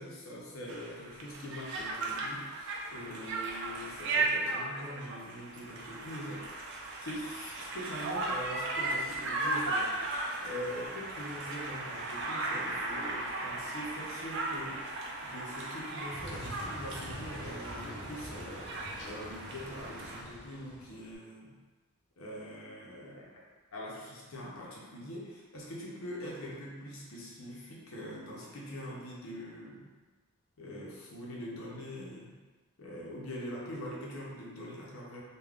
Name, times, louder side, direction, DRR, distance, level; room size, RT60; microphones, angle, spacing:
voice 1, 0.0-6.5 7.0-21.5 22.2-23.4 23.7-29.9 30.6-32.3 32.8-35.2, equal, 75° left, -3 dB, 0.7 m, -43 dB
Conversation, 0.7-20.2, right 2 dB, 60° right, 0.4 m, -36 dB
sound 1, 16.1-21.1, equal, 55° left, 1.0 m, -45 dB
2.3 x 2.3 x 3.5 m, 1.3 s
head